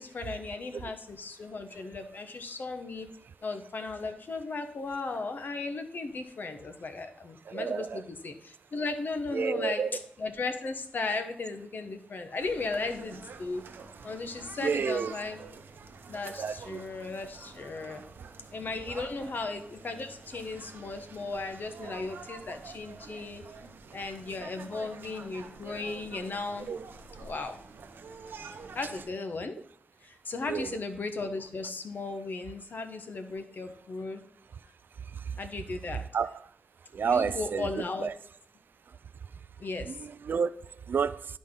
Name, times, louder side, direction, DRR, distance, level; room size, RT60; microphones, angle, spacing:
voice 1, 0.0-3.1 3.4-9.8 10.2-13.6 14.0-15.4 16.1-18.0 18.5-23.4 23.9-26.7 27.1-27.6 28.4-29.6 30.0-34.2 35.4-36.0 37.0-38.1 39.6-40.0, left 3 dB, 65° left, 1.0 m, -36 dB
voice 2, 7.5-8.0 9.3-10.0 14.6-15.1 16.4-16.8 19.2-19.3 26.7-26.8 30.5-30.8 36.1-36.5 36.9-38.1 39.8-40.5 40.9-41.2, right 6 dB, 75° right, 0.3 m, -30 dB
sound 1, 12.4-29.1, right 4 dB, 90° right, 0.7 m, -47 dB
11.5 x 4.2 x 3.7 m
cardioid pair, 70°, 4 cm